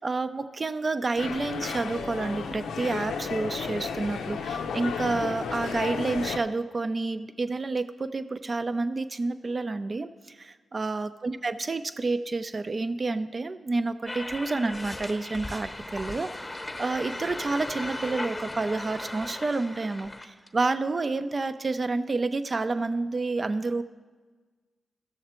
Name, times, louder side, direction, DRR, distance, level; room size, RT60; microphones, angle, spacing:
voice 1, 0.0-16.3 16.8-23.8, right 3 dB, 45° right, 11 dB, 0.6 m, -29 dB
sound 1, 1.2-6.4, left 6 dB, 85° left, 0.5 m, -33 dB
sound 2, 14.0-20.7, left 2 dB, 20° left, 1.0 m, -37 dB
15.0 x 6.6 x 4.4 m, 1.4 s
supercardioid pair, 40°, 0 cm